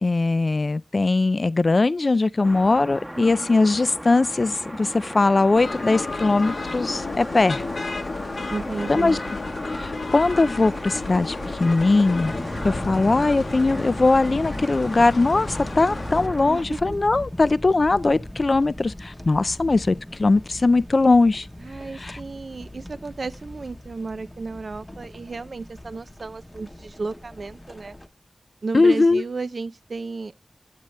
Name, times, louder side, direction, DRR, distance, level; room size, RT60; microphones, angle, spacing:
voice 1, 0.0-7.6 8.9-9.2 9.7-12.4 12.6-21.5 22.0-22.2 28.7-29.2, left 3 dB, 50° left, 0.4 m, -20 dB
sound 1, 2.4-16.6, equal, 10° right, 0.9 m, -37 dB
voice 2, 3.1-3.5 8.5-9.2 16.4-16.8 21.6-28.0 28.6-30.4, right 3 dB, 70° right, 0.5 m, -33 dB
sound 2, 5.6-16.3, left 3 dB, 80° left, 0.9 m, -32 dB
sound 3, 10.1-28.1, left 1 dB, 15° left, 0.8 m, -38 dB
8.9 x 8.5 x 3.1 m
wide cardioid pair, 80°, 0 cm